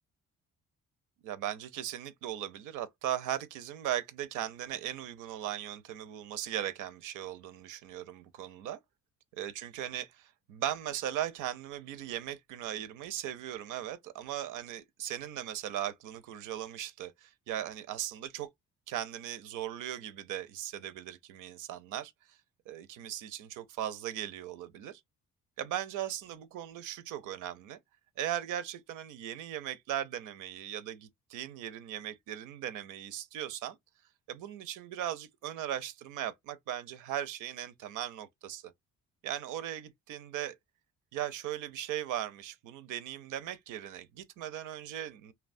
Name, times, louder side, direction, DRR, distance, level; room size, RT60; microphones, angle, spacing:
voice 1, 1.2-8.8 9.3-18.5 18.9-22.4 22.7-25.0 25.6-27.8 28.2-33.8 34.3-38.7 39.2-40.5 41.1-45.3, right 11 dB, 85° right, 0.5 m, -38 dB
2.9 x 2.2 x 2.5 m
cardioid pair, 90°, 30 cm